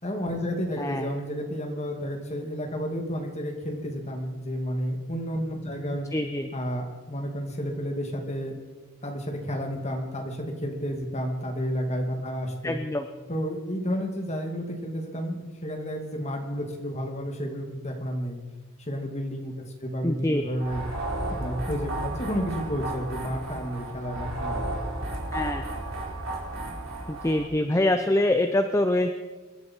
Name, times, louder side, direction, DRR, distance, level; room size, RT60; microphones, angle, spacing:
voice 1, 0.0-6.0 6.5-8.5 9.0-12.8 13.3-18.4 18.9-19.5 19.8-20.8 21.4-24.6, equal, 30° left, 2 dB, 2.3 m, -31 dB
voice 2, 0.8-1.1 6.1-6.5 12.6-13.0 20.0-20.4 25.3-25.6 27.1-29.1, left 1 dB, 15° left, 7 dB, 0.6 m, -24 dB
sound 1, 20.6-27.5, right 1 dB, 60° right, 4.2 m, -33 dB
25.0 x 11.0 x 4.5 m, 1.3 s
head